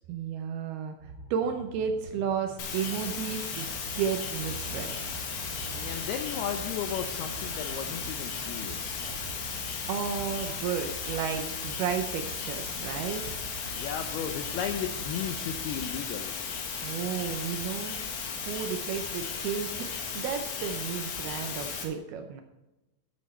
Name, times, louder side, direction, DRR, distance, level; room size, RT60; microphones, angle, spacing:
voice 1, 0.1-3.7 3.9-4.9 9.9-13.2 16.8-18.0 18.4-22.4, right 7 dB, 85° right, 5 dB, 2.2 m, -33 dB
sound 1, 1.0-16.0, right 3 dB, 25° right, 3.0 m, -46 dB
sound 2, 2.6-21.8, left 6 dB, 65° left, 3.4 m, -36 dB
sound 3, 4.3-15.4, right 2 dB, 45° right, 1.8 m, -52 dB
voice 2, 5.7-9.1 13.7-16.3, left 8 dB, 80° left, 6 dB, 2.3 m, -35 dB
13.5 x 7.9 x 4.3 m, 1.0 s
omnidirectional pair, 5.4 m